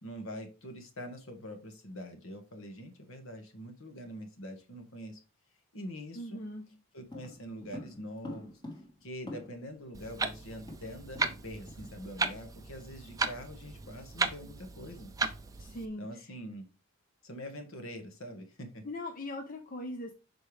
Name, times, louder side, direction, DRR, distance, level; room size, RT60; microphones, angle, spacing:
voice 1, 0.0-5.2 5.7-6.4 6.9-8.6 9.0-15.1 16.0-16.7 17.2-18.8, equal, 65° left, 1.4 m, -44 dB
voice 2, 6.1-6.7 15.6-16.3 18.8-20.1, left 1 dB, 40° left, 0.6 m, -40 dB
sound 1, 7.1-9.8 10.0-10.1 10.4-11.4 11.7-11.9 12.3-12.5, left 1 dB, 20° left, 1.5 m, -46 dB
Clock, 9.9-15.9, right 3 dB, 15° right, 0.5 m, -36 dB
6.5 x 4.5 x 3.3 m
head